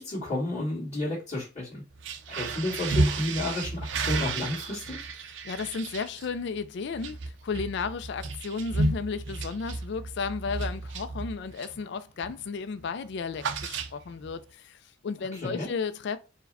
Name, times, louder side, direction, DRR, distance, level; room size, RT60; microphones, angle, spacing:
voice 1, 0.0-1.8 2.3-5.0 15.3-15.7, left 1 dB, 35° left, 1.9 m, -31 dB
sound 1, 1.9-11.9 12.2-12.5 12.7-14.3, right 3 dB, 65° right, 0.5 m, -32 dB
voice 2, 5.4-16.2, left 5 dB, 60° left, 0.4 m, -34 dB
4.6 x 2.2 x 4.0 m
head